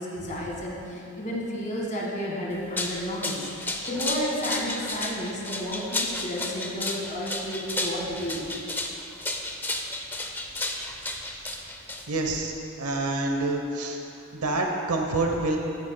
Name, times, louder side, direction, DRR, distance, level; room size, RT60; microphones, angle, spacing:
voice 1, 0.0-3.5 3.9-8.4, equal, 35° left, -3 dB, 1.7 m, -32 dB
sound 1, 2.5-12.4, left 2 dB, 10° left, 0.5 m, -32 dB
voice 2, 12.1-12.5 12.8-14.0 14.3-15.6, right 2 dB, 75° right, 2 dB, 0.9 m, -27 dB
14.0 x 8.9 x 2.2 m, 2.7 s
head